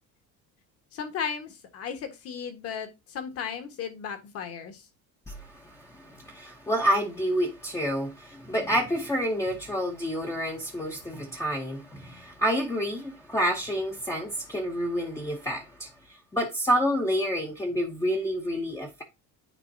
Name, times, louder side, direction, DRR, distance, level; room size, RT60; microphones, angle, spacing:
voice 1, 0.9-4.8, left 7 dB, 45° left, 1.5 m, -35 dB
voice 2, 5.3-19.0, equal, 10° left, 0.8 m, -29 dB
9.9 x 4.2 x 2.7 m
cardioid pair, 160°, 33 cm